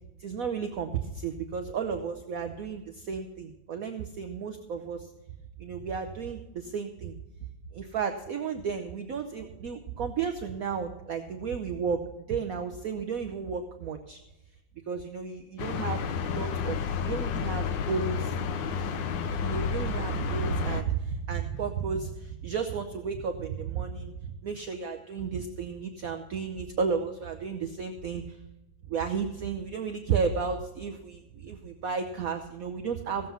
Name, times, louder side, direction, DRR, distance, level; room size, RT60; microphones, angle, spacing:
voice 1, 0.2-5.1 5.6-7.2 7.7-12.0 12.3-14.2 14.9-18.3 19.4-24.1 24.4-28.4 28.9-33.3, right 6 dB, 60° right, 6 dB, 1.1 m, -33 dB
sound 1, 15.6-20.8, left 5 dB, 80° left, 1.5 m, -30 dB
16.0 x 7.7 x 5.6 m, 0.97 s
omnidirectional pair, 2.0 m